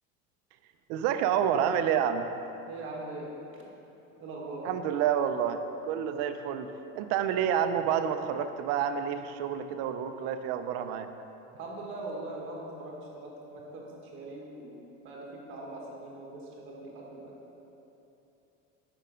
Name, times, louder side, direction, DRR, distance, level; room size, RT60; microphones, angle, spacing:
voice 1, 0.9-2.3 4.6-11.1, right 8 dB, 55° right, 9 dB, 0.5 m, -29 dB
voice 2, 2.7-3.7 4.2-4.7 11.6-12.9 13.2-17.3, right 2 dB, 40° right, -2 dB, 1.4 m, -41 dB
6.6 x 5.3 x 5.0 m, 3.0 s
cardioid pair, 170°, 30 cm